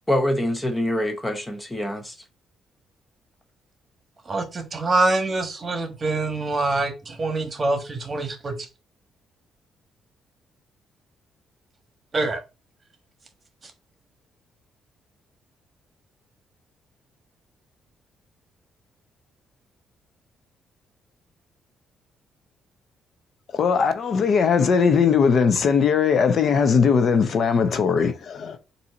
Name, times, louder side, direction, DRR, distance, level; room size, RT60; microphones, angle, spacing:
voice 1, 0.1-2.2, left 1 dB, 15° left, 0.7 m, -25 dB
voice 2, 4.3-8.7 12.1-12.4, right 2 dB, 35° right, 1.3 m, -25 dB
voice 3, 23.5-28.6, left 6 dB, 55° left, 0.6 m, -19 dB
4.2 x 2.7 x 3.8 m
cardioid pair, 90°, 0 cm